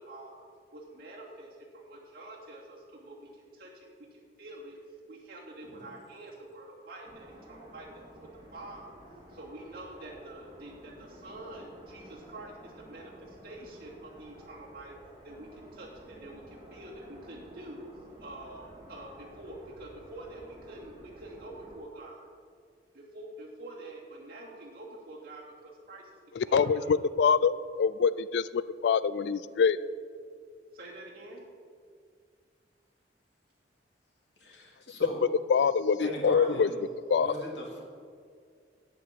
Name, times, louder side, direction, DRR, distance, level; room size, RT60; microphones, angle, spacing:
voice 1, 0.1-0.5 0.7-4.8 5.1-8.1 8.5-8.9 9.3-14.9 15.2-17.8 18.2-22.3 22.9-26.0 26.4-26.9 30.7-31.4, right 2 dB, 60° right, -5 dB, 2.7 m, -46 dB
sound 1, 7.0-21.8, equal, 25° right, 2.4 m, -52 dB
voice 2, 26.4-27.5 27.8-29.8 35.5-36.7 37.1-37.3, left 6 dB, 75° left, 16 dB, 0.4 m, -25 dB
voice 3, 34.4-35.2 36.0-36.8 37.2-37.8, left 1 dB, 90° left, -2 dB, 3.1 m, -39 dB
8.7 x 8.4 x 7.4 m, 2.1 s
head